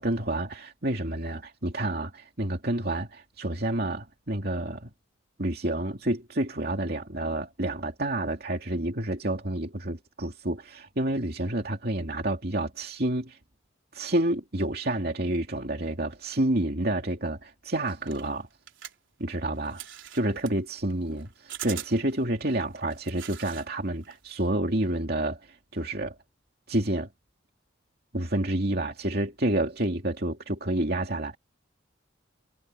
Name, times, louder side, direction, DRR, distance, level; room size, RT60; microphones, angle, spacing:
voice 1, 0.0-4.9 5.4-13.4 13.9-18.5 19.2-19.8 20.1-25.4 25.7-26.1 26.7-27.1 28.1-31.4, right 1 dB, 55° right, 2.7 m, -29 dB
sound 1, 17.9-23.7 24.0-24.4, right 11 dB, 85° right, 3.6 m, -43 dB
head